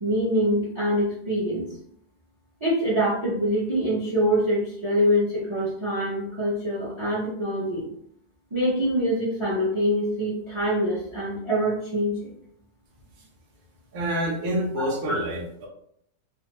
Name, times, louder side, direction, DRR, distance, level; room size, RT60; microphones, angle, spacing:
voice 1, 0.0-1.7 2.6-7.8 8.5-12.3 14.8-15.2, equal, 30° right, -5 dB, 0.5 m, -25 dB
voice 2, 13.9-15.7, equal, 90° right, -1 dB, 1.1 m, -27 dB
2.5 x 2.4 x 2.9 m, 0.67 s
omnidirectional pair, 1.4 m